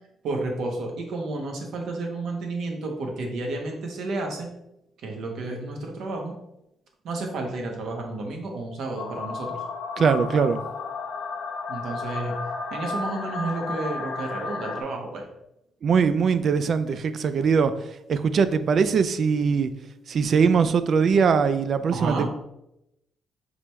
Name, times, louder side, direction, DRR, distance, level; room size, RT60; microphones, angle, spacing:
voice 1, 0.2-4.5 5.0-6.4 7.0-9.6 11.7-12.3 12.7-15.2 21.9-22.3, right 2 dB, 75° right, 2 dB, 1.0 m, -31 dB
sound 1, 9.0-14.8, left 4 dB, 90° left, 0.7 m, -33 dB
voice 2, 10.0-10.6 15.8-17.7 18.1-19.7 20.1-22.3, right 6 dB, 55° right, 12 dB, 0.3 m, -21 dB
5.1 x 3.3 x 3.1 m, 0.85 s
cardioid pair, 90°, 0 cm